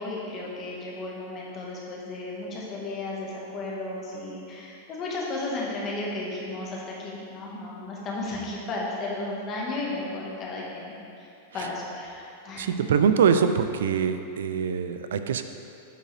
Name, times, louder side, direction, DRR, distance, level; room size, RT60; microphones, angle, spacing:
voice 1, 0.0-12.8, left 2 dB, 25° left, -4 dB, 1.3 m, -34 dB
voice 2, 12.6-15.4, right 7 dB, 90° right, 9 dB, 0.4 m, -23 dB
8.7 x 5.3 x 3.3 m, 2.6 s
supercardioid pair, 160°, 0 cm